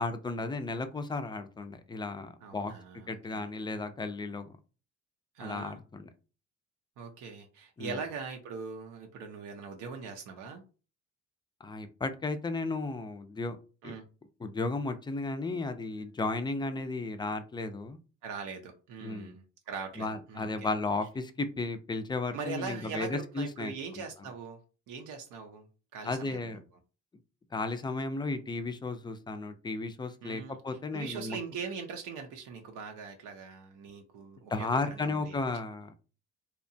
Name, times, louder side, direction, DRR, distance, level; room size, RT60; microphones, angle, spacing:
voice 1, 0.0-2.7 3.1-4.5 5.4-6.1 7.8-8.0 11.6-13.6 13.8-14.0 14.4-18.0 19.0-19.4 20.0-24.0 26.0-26.6 27.5-31.4 34.5-35.9, left 3 dB, 15° left, 0.3 m, -34 dB
voice 2, 2.4-3.5 5.3-5.8 7.0-10.6 13.8-14.0 18.2-20.7 22.3-24.6 24.9-25.6 25.9-26.6 30.2-35.4, right 5 dB, 90° right, 0.5 m, -41 dB
2.8 x 2.2 x 2.6 m
cardioid pair, 90°, 30 cm